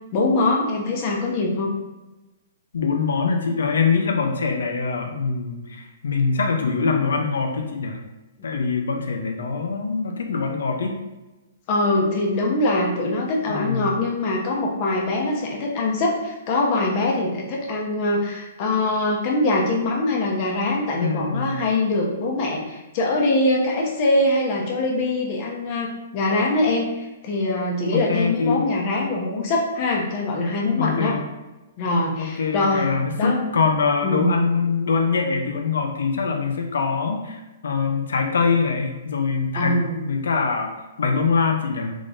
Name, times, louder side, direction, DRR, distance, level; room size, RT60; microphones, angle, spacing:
voice 1, 0.1-1.7 11.7-31.2 31.8-33.4 34.0-34.4 39.5-40.0, left 2 dB, 40° left, -1 dB, 0.9 m, -23 dB
voice 2, 2.7-8.0 8.4-11.0 13.5-13.9 21.0-21.6 27.9-28.6 30.8-31.2 32.2-41.9, left 5 dB, 85° left, 3 dB, 0.7 m, -23 dB
3.6 x 3.5 x 2.6 m, 1.1 s
hypercardioid pair, 145°, 0 cm